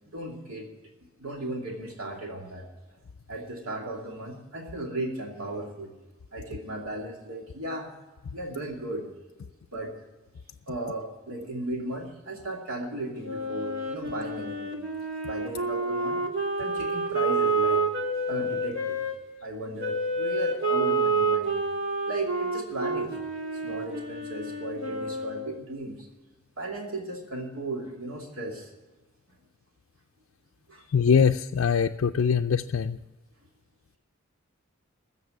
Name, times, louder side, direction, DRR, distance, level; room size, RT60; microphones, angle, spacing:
voice 1, 0.1-0.7 1.2-2.6 2.9-3.0 3.3-5.9 6.3-7.9 8.3-9.0 9.7-9.9 10.7-14.8 15.2-16.2 16.6-17.9 18.3-19.0 19.4-21.5 22.1-23.1 23.5-26.1 26.6-28.7 30.7-30.8, right 1 dB, 85° right, 0 dB, 2.7 m, -36 dB
Wind instrument woodwind instrument, 13.2-19.1 19.8-25.7, right 3 dB, 60° right, 2.3 m, -29 dB
voice 2, 30.9-33.0, left 6 dB, 65° left, 6 dB, 0.4 m, -22 dB
14.5 x 7.4 x 10.0 m, 1.1 s
head